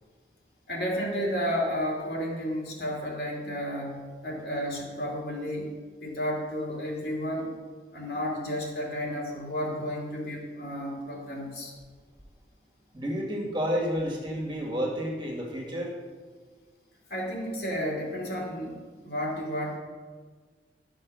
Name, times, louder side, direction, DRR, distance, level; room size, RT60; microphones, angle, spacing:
voice 1, 0.7-7.5 7.9-11.7 17.1-19.8, equal, 60° left, -2 dB, 2.7 m, -32 dB
voice 2, 12.9-15.9, equal, 25° right, -2 dB, 2.2 m, -30 dB
12.0 x 6.3 x 6.3 m, 1.5 s
head